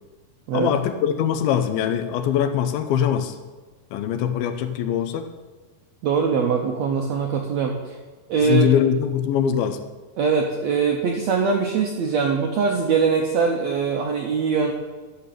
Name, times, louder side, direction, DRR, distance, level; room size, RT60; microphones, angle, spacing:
voice 1, 0.5-3.4 3.9-5.3 8.4-9.8, left 9 dB, 85° left, 9 dB, 2.6 m, -22 dB
voice 2, 6.0-7.9 8.3-8.7 10.2-14.7, right 5 dB, 85° right, 2 dB, 1.5 m, -22 dB
11.5 x 6.9 x 6.6 m, 1.3 s
omnidirectional pair, 4.2 m